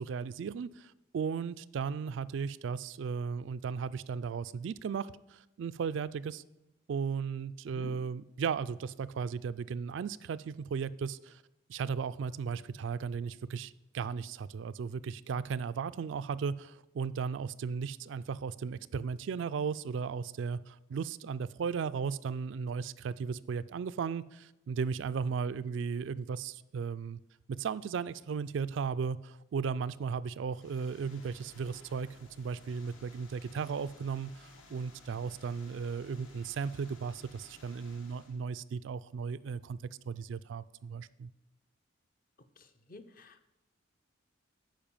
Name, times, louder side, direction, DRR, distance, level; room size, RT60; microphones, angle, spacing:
voice 1, 0.0-6.4 6.9-11.4 11.7-27.2 27.6-32.1 32.4-39.8 40.1-41.3, right 6 dB, 65° right, 0.3 m, -36 dB
sound 1, 30.5-38.4, left 2 dB, 70° left, 1.5 m, -57 dB
voice 2, 42.6-43.5, left 3 dB, 45° left, 0.7 m, -51 dB
8.9 x 5.3 x 7.1 m
head